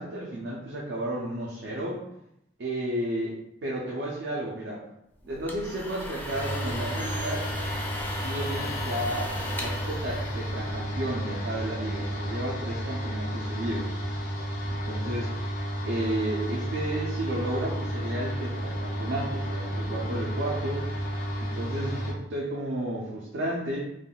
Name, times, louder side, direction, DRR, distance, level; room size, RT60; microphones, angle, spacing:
voice 1, 0.0-2.0 2.6-3.4 3.6-4.8 5.2-7.5 8.2-14.0 14.7-15.4 15.9-20.9 21.4-23.8, right 1 dB, 75° right, -4 dB, 0.5 m, -32 dB
sound 1, 5.3-11.0, left 1 dB, 10° left, 0.3 m, -37 dB
sound 2, 6.3-22.1, equal, 55° left, 0.6 m, -32 dB
3.4 x 2.2 x 2.3 m, 0.82 s
head